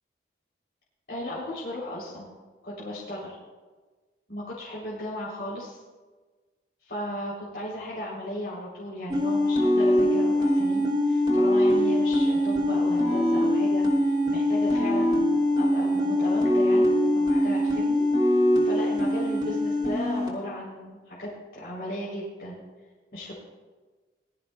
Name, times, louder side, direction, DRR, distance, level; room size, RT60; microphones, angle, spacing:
voice 1, 1.1-2.3 2.6-3.3 4.3-5.8 6.8-22.6 23.1-23.4, left 1 dB, 55° left, -7 dB, 3.4 m, -36 dB
sound 1, 9.1-20.3, left 1 dB, 25° right, 2.8 m, -23 dB
20.5 x 13.0 x 2.3 m, 1.3 s
head